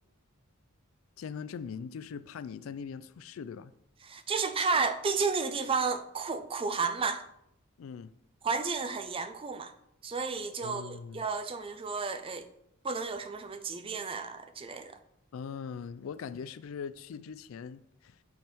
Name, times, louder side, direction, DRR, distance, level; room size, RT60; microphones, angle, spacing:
voice 1, 1.2-3.7 7.8-8.1 10.6-11.3 15.3-18.2, left 6 dB, 70° left, 0.3 m, -41 dB
voice 2, 4.0-7.2 8.4-9.7 10.0-12.5 12.8-15.0, right 4 dB, 25° right, 0.4 m, -32 dB
8.1 x 3.5 x 4.4 m
head